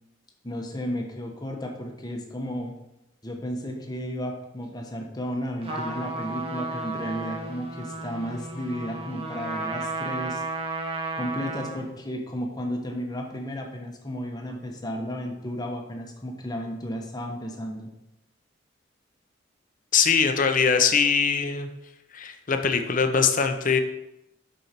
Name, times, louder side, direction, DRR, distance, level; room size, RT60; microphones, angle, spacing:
voice 1, 0.4-2.7 3.2-10.4 11.2-17.9, equal, 20° left, 2 dB, 1.1 m, -33 dB
Trumpet, 5.6-11.9, right 2 dB, 30° right, 1.2 m, -33 dB
voice 2, 19.9-21.7 22.1-23.8, left 6 dB, 45° left, 6 dB, 0.7 m, -22 dB
8.2 x 5.5 x 4.5 m, 0.88 s
head